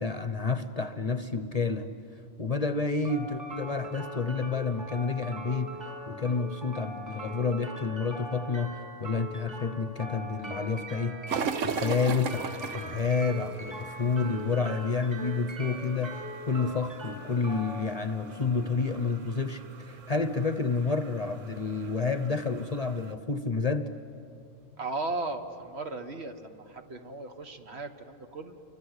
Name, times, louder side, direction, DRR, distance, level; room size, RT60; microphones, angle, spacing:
voice 1, 0.0-1.9 2.4-11.2 11.6-16.2 16.5-23.9, left 4 dB, 35° left, 9 dB, 0.9 m, -29 dB
sound 1, 3.0-19.1, equal, 15° right, 3.6 m, -41 dB
sound 2, 11.3-23.1, right 6 dB, 80° right, 1.4 m, -40 dB
voice 2, 24.8-28.6, right 2 dB, 55° right, 6 dB, 1.7 m, -36 dB
29.5 x 24.5 x 8.2 m, 2.7 s
omnidirectional pair, 1.3 m